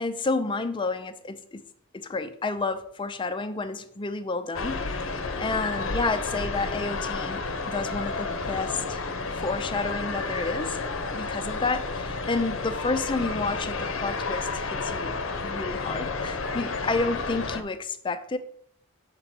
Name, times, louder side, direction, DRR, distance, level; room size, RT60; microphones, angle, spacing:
voice 1, 0.0-1.6 1.9-7.4 7.7-9.0 9.3-15.2 15.4-18.4, left 3 dB, 25° left, 10 dB, 0.4 m, -30 dB
sound 1, 4.5-17.6, left 3 dB, 70° left, 0.7 m, -31 dB
6.7 x 4.1 x 5.9 m, 0.67 s
head